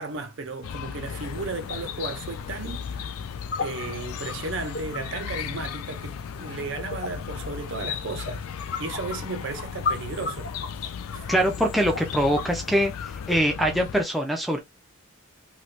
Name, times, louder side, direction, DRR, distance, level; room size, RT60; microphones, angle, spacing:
voice 1, 0.0-3.2 3.6-8.4 8.8-10.5 11.1-11.3, right 3 dB, 55° right, 0.5 m, -34 dB
Chirp tweet, 0.6-14.0, left 7 dB, 80° left, 0.4 m, -36 dB
sound 1, 1.1-13.4, left 4 dB, 45° left, 1.1 m, -38 dB
voice 2, 11.3-12.9 13.3-14.6, equal, ahead, 0.6 m, -23 dB
3.2 x 2.9 x 2.4 m
head